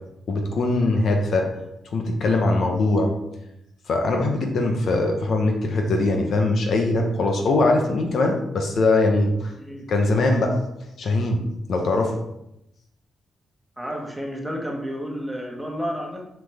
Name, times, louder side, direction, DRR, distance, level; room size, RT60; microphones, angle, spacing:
voice 1, 0.3-1.5 1.9-3.1 3.9-9.5 9.9-10.6 11.0-11.4 11.7-12.1, left 2 dB, 65° left, 3 dB, 1.1 m, -21 dB
voice 2, 13.8-16.3, equal, ahead, -1 dB, 1.5 m, -31 dB
6.0 x 5.9 x 3.5 m, 0.84 s
cardioid pair, 95°, 0 cm